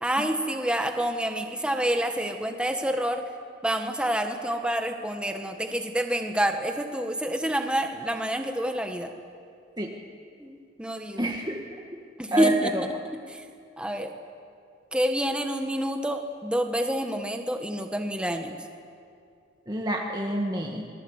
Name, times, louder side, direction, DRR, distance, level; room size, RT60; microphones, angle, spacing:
voice 1, 0.0-3.2 3.6-9.1 10.4-11.3 12.2-12.7 13.3-13.4 13.8-14.1 14.9-18.6, right 1 dB, 5° right, 4 dB, 1.5 m, -28 dB
voice 2, 11.2-11.6 12.3-12.8 19.7-20.9, right 1 dB, 20° right, -1 dB, 1.7 m, -27 dB
28.0 x 22.5 x 8.2 m, 2.4 s
head